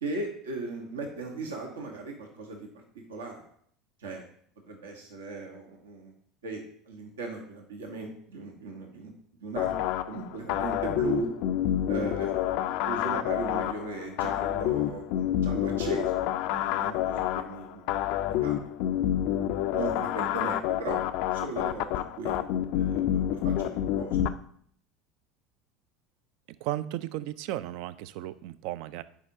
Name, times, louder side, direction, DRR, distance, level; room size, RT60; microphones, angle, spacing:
voice 1, 0.0-2.7 2.9-3.4 4.0-4.3 4.7-6.1 6.4-9.1 9.4-9.7 10.1-11.3 11.9-12.4 12.8-18.0 18.4-18.6 19.7-21.0 21.3-22.4 22.7-24.2, right 3 dB, 80° right, 2 dB, 1.0 m, -37 dB
sound 1, 9.6-24.3, left 11 dB, 60° left, 0.3 m, -28 dB
voice 2, 26.6-29.0, right 14 dB, 60° right, 15 dB, 0.3 m, -35 dB
9.8 x 4.8 x 2.7 m, 0.62 s
hypercardioid pair, 70°, 0 cm